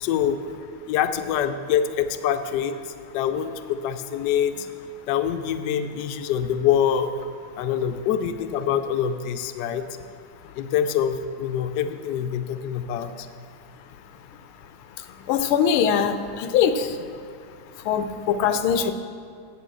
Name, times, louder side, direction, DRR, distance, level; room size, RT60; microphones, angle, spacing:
voice 1, 0.0-0.4 0.9-2.7 3.1-4.5 5.1-7.1 7.6-9.8 10.6-13.3, left 9 dB, 70° left, 8 dB, 1.1 m, -25 dB
voice 2, 15.3-17.0 17.9-18.9, left 7 dB, 90° left, 9 dB, 1.5 m, -22 dB
8.9 x 6.9 x 7.6 m, 2.3 s
omnidirectional pair, 2.3 m